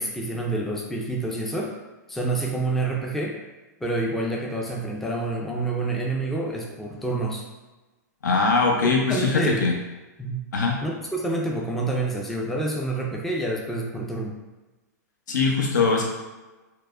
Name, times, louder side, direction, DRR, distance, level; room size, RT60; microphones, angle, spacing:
voice 1, 0.0-1.8 2.1-3.4 3.8-7.5 8.8-9.7 10.2-10.5 10.8-14.4, right 2 dB, 5° left, -2 dB, 0.4 m, -28 dB
voice 2, 8.2-9.7 10.5-10.8 15.3-16.0, left 4 dB, 80° left, 0 dB, 0.8 m, -21 dB
4.6 x 2.0 x 2.4 m, 1.1 s
hypercardioid pair, 130°, 10 cm